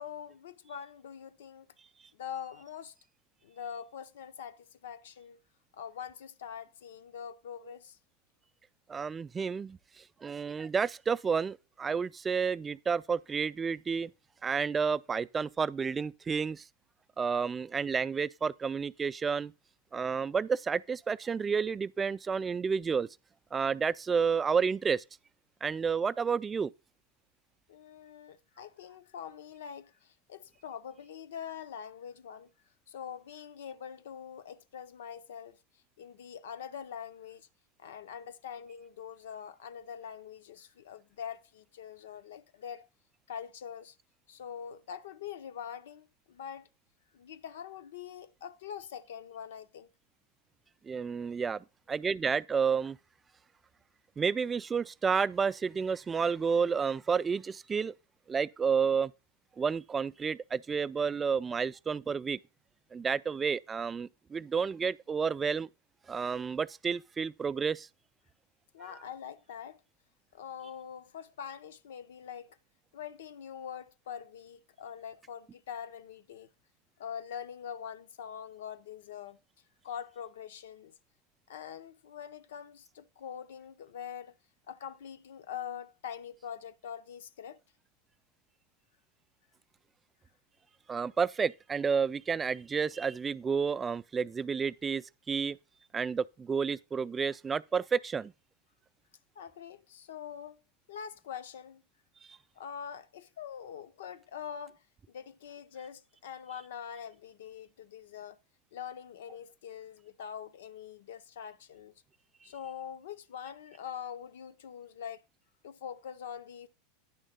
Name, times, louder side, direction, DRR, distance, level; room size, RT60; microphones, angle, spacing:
voice 1, 0.0-1.7 2.1-2.9 3.4-5.4 5.7-8.0 27.7-32.5 32.9-35.6 36.0-37.5 37.8-42.9 43.3-44.0 44.3-46.7 47.1-49.9 68.7-69.8 70.3-72.6 72.9-76.5 77.0-79.4 79.8-80.9 81.5-84.3 84.7-87.6 99.4-100.6 100.9-101.8 102.6-104.8 105.1-108.4 108.7-111.9 112.4-115.2 115.6-116.7, left 8 dB, 80° left, 0.6 m, -44 dB
voice 2, 8.9-9.8 10.2-14.1 14.4-16.6 17.2-19.5 19.9-23.1 23.5-25.0 25.6-26.7 50.8-53.0 54.2-57.9 58.3-59.1 59.6-62.4 62.9-65.7 66.1-67.9 90.9-95.6 95.9-98.3, right 6 dB, 20° right, 0.4 m, -30 dB
10.0 x 3.4 x 6.6 m
hypercardioid pair, 105°, 0 cm